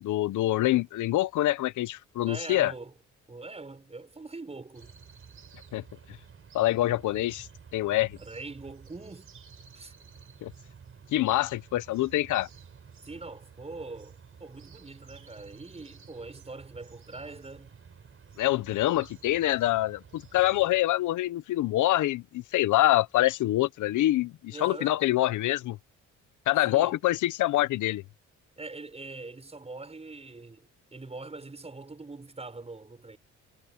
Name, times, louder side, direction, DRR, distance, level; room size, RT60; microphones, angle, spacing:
voice 1, 0.0-2.7 5.7-5.8 6.5-7.5 7.7-8.2 10.4-10.5 11.1-12.5 18.4-25.8 26.5-28.0, left 15 dB, 80° left, 0.9 m, -25 dB
voice 2, 2.3-2.9 3.3-4.9 8.2-9.3 9.7-9.9 13.0-17.7 24.5-24.9 26.7-27.0 28.6-33.2, right 3 dB, 20° right, 6.8 m, -43 dB
sound 1, 4.7-20.8, right 6 dB, 45° right, 4.7 m, -52 dB
cardioid pair, 90°, 30 cm